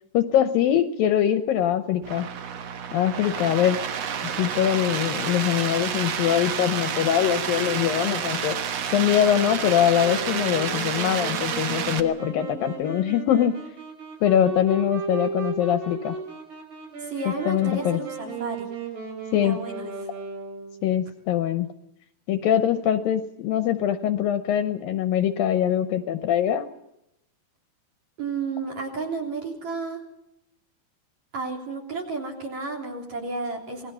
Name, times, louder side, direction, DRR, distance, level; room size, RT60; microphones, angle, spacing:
voice 1, 0.1-2.3 2.9-3.8 4.4-8.6 8.9-13.5 14.2-16.2 17.3-18.0 19.3-19.6 20.8-21.7 22.3-26.7, left 10 dB, 70° left, 10 dB, 2.4 m, -23 dB
sound 1, 2.0-12.0, right 7 dB, 60° right, 1.7 m, -29 dB
Wind instrument woodwind instrument, 10.0-20.9, right 4 dB, 75° right, 7.8 m, -36 dB
voice 2, 17.0-18.7 19.4-19.9 28.2-30.0 31.3-33.9, right 4 dB, 45° right, 5 dB, 4.6 m, -32 dB
27.0 x 20.0 x 5.6 m, 0.84 s
omnidirectional pair, 4.6 m